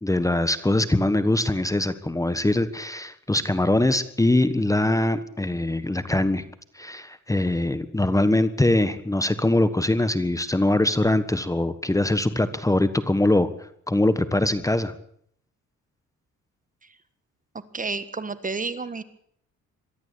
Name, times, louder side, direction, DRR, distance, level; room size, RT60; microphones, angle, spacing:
voice 1, 0.0-6.4 6.7-14.9, left 1 dB, 10° left, 13 dB, 1.4 m, -22 dB
voice 2, 17.7-19.0, right 4 dB, 25° right, 13 dB, 1.6 m, -30 dB
23.0 x 13.5 x 8.6 m, 0.67 s
cardioid pair, 90°, 30 cm